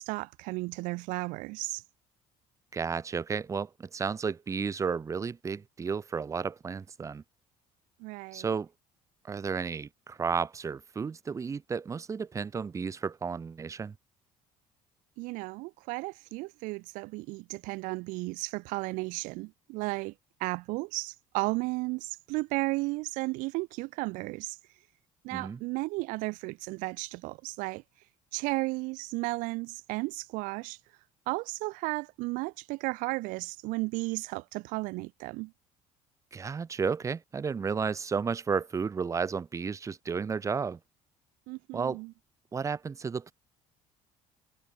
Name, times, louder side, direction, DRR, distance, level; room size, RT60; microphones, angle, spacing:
voice 1, 0.0-1.8 8.0-8.5 15.2-20.1 20.4-24.6 25.2-27.8 28.3-30.8 31.3-35.5 41.5-42.1, right 24 dB, 85° right, 0.4 m, -34 dB
voice 2, 2.7-7.2 8.3-8.7 9.2-14.0 25.3-25.6 36.3-40.8 41.7-42.0 42.5-43.3, right 5 dB, 25° right, 0.9 m, -32 dB
cardioid pair, 130°, 13 cm